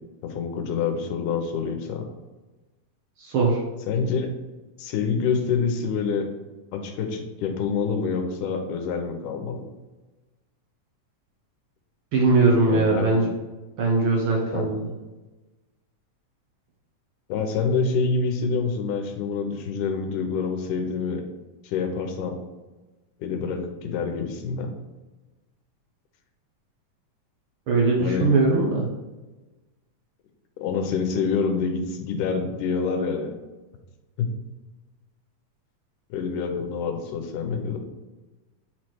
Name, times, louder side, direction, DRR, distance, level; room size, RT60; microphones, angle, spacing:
voice 1, 0.2-2.1 3.9-4.3 4.8-6.3 6.7-9.6 12.7-13.1 14.5-14.7 17.3-21.2 21.6-22.4 23.2-24.7 28.0-28.3 30.6-33.3 34.2-34.3 36.1-37.8, left 5 dB, 85° left, 4 dB, 2.4 m, -26 dB
voice 2, 3.2-3.6 12.1-13.3 13.8-14.9 27.7-28.9, right 3 dB, 80° right, -2 dB, 1.1 m, -20 dB
8.1 x 3.2 x 4.5 m, 1.2 s
omnidirectional pair, 3.6 m